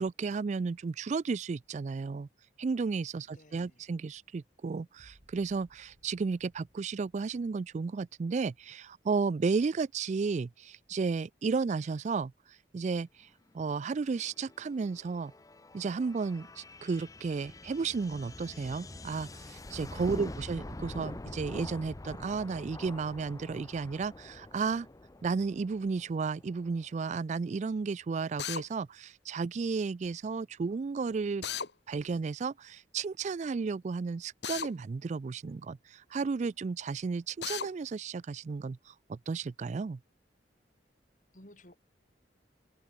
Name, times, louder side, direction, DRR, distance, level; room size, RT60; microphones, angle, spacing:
voice 1, 0.0-2.3 2.6-13.3 13.5-15.3 15.7-24.9 25.2-31.4 31.9-40.0, right 4 dB, 40° right, 0.3 m, -33 dB
voice 2, 3.2-3.8 41.3-41.8, left 1 dB, 45° left, 7.9 m, -56 dB
sound 1, 5.0-10.4 10.9-11.5, equal, 65° right, 7.2 m, -67 dB
sound 2, 13.6-27.1, left 2 dB, 20° left, 0.6 m, -46 dB
Drill, 28.4-28.6 31.4-31.7 34.4-34.7 37.4-37.7, left 8 dB, 70° left, 2.0 m, -35 dB
head